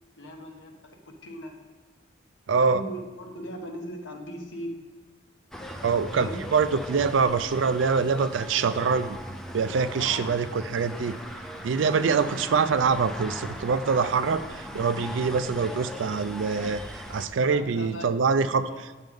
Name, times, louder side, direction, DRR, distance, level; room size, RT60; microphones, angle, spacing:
voice 1, 0.2-1.6 2.6-4.8 6.1-6.4 10.0-10.3 17.5-18.8, equal, 80° left, 3 dB, 1.0 m, -39 dB
voice 2, 2.5-2.8 5.8-9.2 9.5-11.1 11.6-16.8 17.1-18.6, right 5 dB, 80° right, 13 dB, 0.4 m, -24 dB
sound 1, 5.5-17.3, equal, 5° left, 0.5 m, -39 dB
9.1 x 6.4 x 3.6 m, 1.3 s
head